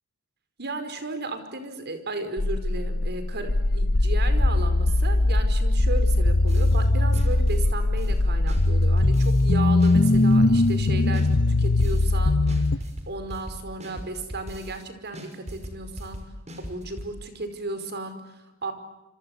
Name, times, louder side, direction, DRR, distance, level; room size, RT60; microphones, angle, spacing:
voice 1, 0.6-11.3 11.6-12.7 13.1-18.7, right 2 dB, 50° right, 9 dB, 5.1 m, -35 dB
sound 1, 2.4-12.8, left 2 dB, 50° left, 1.0 m, -21 dB
sound 2, 6.5-6.8 7.1-9.5 9.8-12.2 12.5-14.8 15.1-17.1, equal, 30° right, 5.9 m, -39 dB
27.5 x 27.0 x 8.1 m, 0.97 s
head